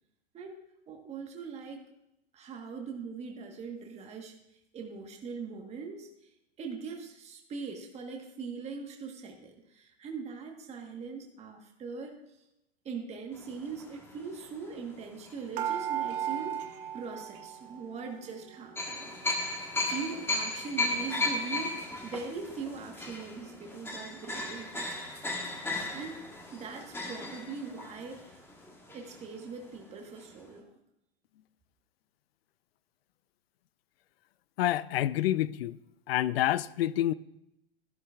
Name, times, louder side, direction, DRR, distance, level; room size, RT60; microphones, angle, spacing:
voice 1, 0.3-1.8 2.3-4.3 4.7-6.3 6.6-12.2 12.8-16.6 16.9-19.1 19.9-24.9 25.9-26.2 26.5-28.4 28.9-30.7, right 5 dB, 20° right, 2 dB, 1.3 m, -41 dB
sound 1, 13.3-15.8 16.4-16.5 18.8-29.5 29.8-29.9 30.2-30.3, left 2 dB, 5° left, 1.3 m, -36 dB
sound 2, 15.6-18.1 18.4-19.4 19.9-20.0 20.2-20.4, right 10 dB, 45° right, 1.2 m, -36 dB
voice 2, 34.6-35.8 36.1-37.1, left 13 dB, 65° left, 18 dB, 0.5 m, -28 dB
13.0 x 12.0 x 2.4 m, 0.86 s
hypercardioid pair, 120°, 32 cm